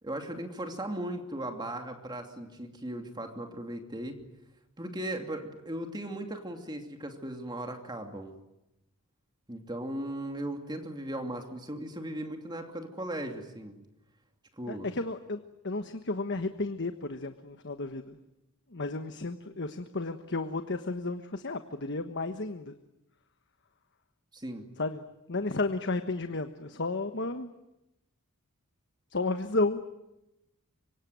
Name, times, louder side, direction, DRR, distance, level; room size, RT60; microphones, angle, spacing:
voice 1, 0.0-4.2 4.8-8.3 9.5-13.8 14.6-14.9 24.3-24.7, right 1 dB, 20° right, 5 dB, 2.7 m, -37 dB
voice 2, 14.7-18.2 18.7-22.8 24.8-27.5 29.1-29.8, left 2 dB, 55° left, 8 dB, 1.3 m, -33 dB
25.5 x 24.5 x 9.4 m, 0.91 s
head